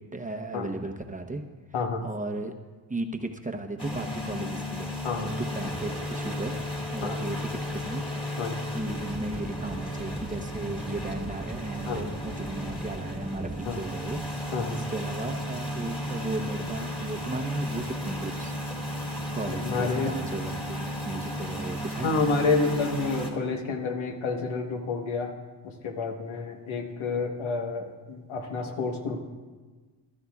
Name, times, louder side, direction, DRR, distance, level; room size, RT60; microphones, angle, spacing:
voice 1, 0.1-1.4 2.0-2.5 2.9-14.2 14.7-18.6 19.3-22.2, right 2 dB, 15° right, 4 dB, 0.8 m, -35 dB
voice 2, 1.7-2.0 5.0-5.3 7.0-7.2 8.4-8.6 11.9-12.0 13.7-13.8 14.5-14.8 19.6-20.1 22.0-25.3 25.6-29.2, left 4 dB, 85° left, 3 dB, 1.3 m, -29 dB
sound 1, 3.8-23.3, equal, 10° left, 1.7 m, -34 dB
15.0 x 12.5 x 2.4 m, 1.4 s
cardioid pair, 85°, 46 cm